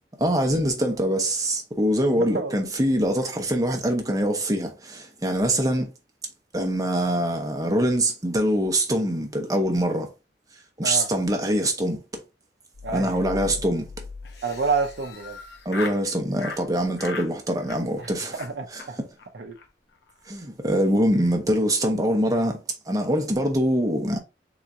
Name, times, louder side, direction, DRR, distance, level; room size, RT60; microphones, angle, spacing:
voice 1, 0.2-5.9 6.5-10.1 10.8-12.0 12.9-13.9 15.6-18.4 18.7-19.1 20.3-22.6 22.9-24.2, right 1 dB, 20° right, 0.9 m, -24 dB
voice 2, 2.1-2.5 10.8-11.1 12.8-13.2 14.4-15.4 18.0-19.0 19.3-19.6, right 4 dB, 75° right, 0.7 m, -29 dB
sound 1, 12.7-15.6, left 4 dB, 50° left, 0.5 m, -40 dB
Laughter, 14.2-16.0 16.4-16.6 17.0-17.3 17.6-18.1 18.4-18.5 18.8-18.9 19.2-19.3 19.5-19.7 19.9-20.3, left 4 dB, 70° left, 0.9 m, -38 dB
3.9 x 2.9 x 3.5 m
head